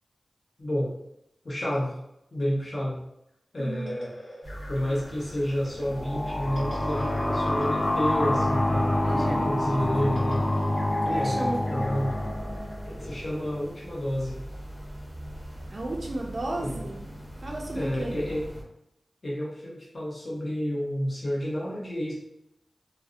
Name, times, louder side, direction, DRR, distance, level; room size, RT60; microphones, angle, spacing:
voice 1, 0.6-0.9 1.4-2.0 2.3-3.0 3.5-4.1 4.7-10.4 11.1-12.1 13.0-14.4 16.6-16.9 17.7-18.5 19.2-22.1, equal, 55° left, -4 dB, 0.8 m, -30 dB
sound 1, 3.6-14.1, equal, 80° left, 0.9 m, -46 dB
voice 2, 3.6-4.0 9.0-9.5 10.0-10.2 11.0-11.8 15.7-17.0 17.4-18.2, right 2 dB, 60° right, 0 dB, 0.3 m, -34 dB
sound 2, 4.4-18.6, equal, 15° right, 0.6 m, -41 dB
sound 3, 5.8-13.3, left 1 dB, 30° left, 0.3 m, -27 dB
2.5 x 2.0 x 2.4 m, 0.81 s
cardioid pair, 50°, 0 cm